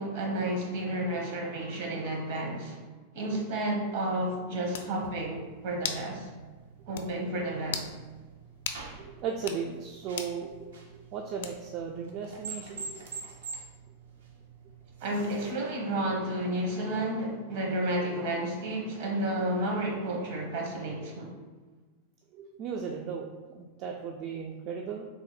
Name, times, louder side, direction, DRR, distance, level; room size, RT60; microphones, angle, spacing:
voice 1, 0.0-2.8 3.1-6.3 6.9-7.9 15.0-21.3, right 1 dB, 60° right, 0 dB, 0.9 m, -31 dB
sound 1, 4.3-4.4 4.7-4.9 5.8-6.1 6.5-6.6 7.0-7.1 7.7-7.9 8.7-8.8 9.4-9.6 10.2-10.4 11.4-11.8, left 7 dB, 80° left, 0.3 m, -36 dB
sound 2, 5.0-15.5, right 4 dB, 90° right, 0.7 m, -47 dB
voice 2, 9.0-13.0 22.3-25.0, right 6 dB, 45° right, 2 dB, 0.3 m, -36 dB
3.5 x 2.1 x 3.9 m, 1.3 s
supercardioid pair, 135°, 0 cm